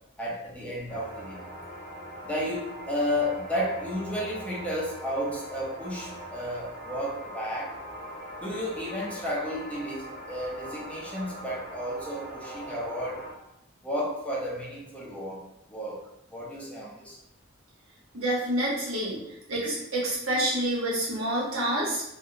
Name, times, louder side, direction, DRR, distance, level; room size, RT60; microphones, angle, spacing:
voice 1, 0.2-1.5 2.2-7.8 8.4-13.2 13.8-15.4 15.7-17.2, equal, 5° left, -6 dB, 0.6 m, -32 dB
sound 1, 0.9-13.3, right 1 dB, 50° right, 1.0 m, -41 dB
voice 2, 18.1-19.2 19.5-22.0, right 1 dB, 75° right, -5 dB, 1.1 m, -28 dB
3.4 x 2.2 x 2.6 m, 0.83 s
head